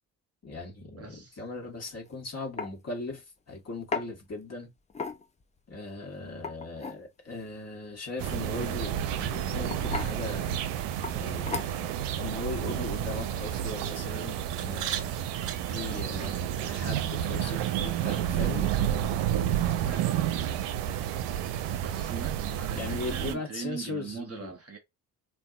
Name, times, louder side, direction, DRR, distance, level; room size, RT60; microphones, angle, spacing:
voice 1, 0.4-4.7 5.7-10.6 11.1-15.1 15.6-18.7 22.8-24.5, left 3 dB, 30° left, 1.2 m, -39 dB
voice 2, 1.0-1.4 19.8-20.7 21.8-24.8, right 6 dB, 30° right, 0.9 m, -41 dB
sound 1, 1.9-2.1 2.6-2.7 3.9-4.1 4.9-5.4 6.3-7.0 8.6-8.9 9.7-10.1 11.0-11.2 11.5-11.9, left 4 dB, 15° left, 0.5 m, -34 dB
sound 2, 8.2-23.3, right 10 dB, 60° right, 0.6 m, -30 dB
2.6 x 2.3 x 2.4 m
hypercardioid pair, 45°, 48 cm